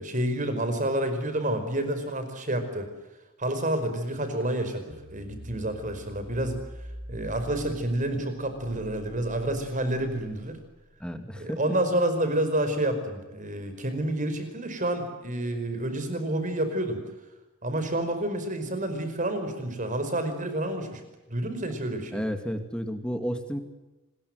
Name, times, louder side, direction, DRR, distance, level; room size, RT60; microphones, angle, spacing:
voice 1, 0.0-2.9 3.4-6.6 7.1-10.6 11.4-17.0 17.6-21.0 21.3-22.1, right 1 dB, 35° right, 9 dB, 5.1 m, -29 dB
sound 1, 4.9-11.2, equal, 60° right, 5.4 m, -45 dB
voice 2, 11.0-11.6 22.1-23.6, equal, 5° left, 7 dB, 2.4 m, -31 dB
26.5 x 21.0 x 8.0 m, 1.1 s
head